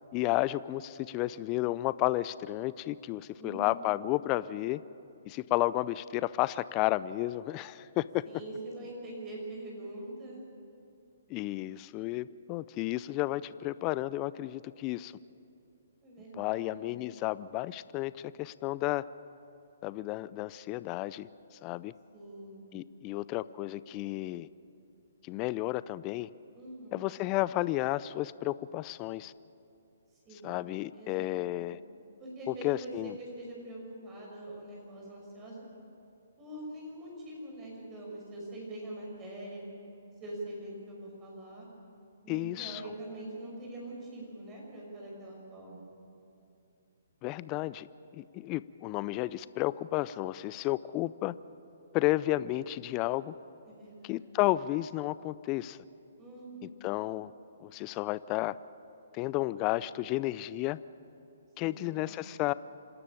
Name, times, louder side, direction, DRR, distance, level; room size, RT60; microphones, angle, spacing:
voice 1, 0.1-4.8 5.3-8.2 11.3-15.1 16.3-19.0 19.8-21.3 21.6-21.9 22.7-24.5 25.2-26.3 26.9-29.3 30.4-31.8 32.5-33.1 42.3-42.8 47.2-47.9 48.1-51.3 51.9-53.3 54.0-55.8 56.8-57.3 57.6-58.6 59.1-60.8 61.6-62.5, left 17 dB, 30° left, 18 dB, 0.4 m, -32 dB
voice 2, 3.4-4.0 8.2-10.5 16.0-17.1 22.1-22.6 26.5-27.0 30.1-30.6 30.9-31.8 32.2-35.7 36.4-39.6 40.2-41.7 42.2-45.9 53.6-54.3 56.2-56.8 61.6-62.0, right 1 dB, 20° right, -3 dB, 6.2 m, -44 dB
26.5 x 13.0 x 8.9 m, 2.7 s
hypercardioid pair, 135°, 0 cm